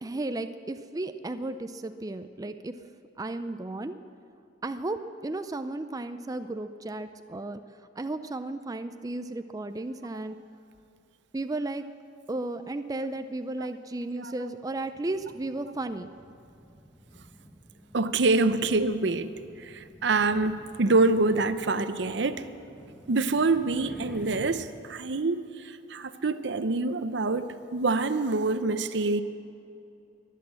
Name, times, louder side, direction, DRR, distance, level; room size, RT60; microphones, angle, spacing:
voice 1, 0.0-2.7 3.2-3.9 4.6-5.0 5.2-7.6 8.0-10.4 11.3-11.8 12.3-16.1, right 2 dB, 20° right, 10 dB, 0.4 m, -34 dB
sound 1, 14.8-24.7, equal, ahead, 1.0 m, -50 dB
voice 2, 17.9-19.3 19.6-22.4 23.1-29.2, right 3 dB, 65° right, 12 dB, 0.7 m, -26 dB
22.5 x 8.4 x 7.5 m, 2.6 s
head